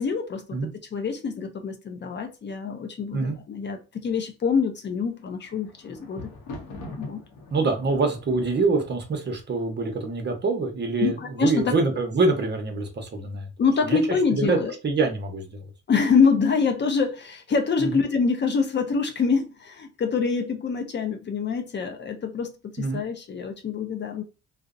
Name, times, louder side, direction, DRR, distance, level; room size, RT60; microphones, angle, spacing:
voice 1, 0.0-0.6 0.9-6.3 7.0-7.2 11.0-11.7 13.6-14.7 15.9-24.2, left 5 dB, 35° left, 0.5 m, -25 dB
Thunder, 5.1-10.3 11.0-11.5 11.8-11.9, left 2 dB, 90° left, 0.7 m, -42 dB
voice 2, 7.5-13.5 13.8-14.0 14.3-14.6 14.8-15.6 17.8-18.0 22.8-23.0, right 3 dB, 35° right, 0.7 m, -25 dB
2.6 x 2.0 x 2.4 m
cardioid pair, 90°, 30 cm